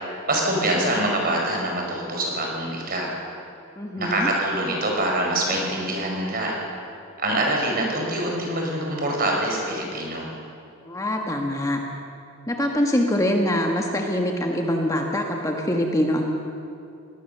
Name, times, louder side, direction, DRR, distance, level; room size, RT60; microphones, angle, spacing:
voice 1, 0.3-3.1 3.9-6.6 7.2-10.3, right 1 dB, 45° right, 0 dB, 5.1 m, -25 dB
voice 2, 3.8-4.3 10.9-11.8 12.5-16.2, left 1 dB, 15° left, 1 dB, 1.4 m, -24 dB
23.0 x 19.0 x 6.8 m, 2.5 s
head